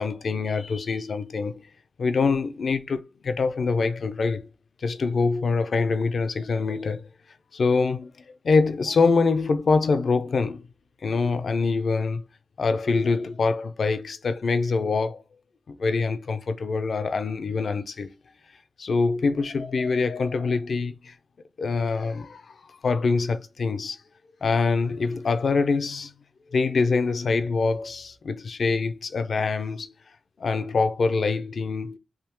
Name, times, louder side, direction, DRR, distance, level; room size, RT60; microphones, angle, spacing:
voice 1, 0.0-1.7 2.0-4.5 4.8-7.1 7.5-8.1 8.4-10.7 11.0-12.2 12.6-15.2 15.7-18.1 18.8-21.1 21.6-24.0 24.4-26.1 26.5-29.9 30.4-32.0, left 4 dB, 65° left, 0.5 m, -24 dB
3.5 x 2.7 x 2.9 m
wide cardioid pair, 110°, 0 cm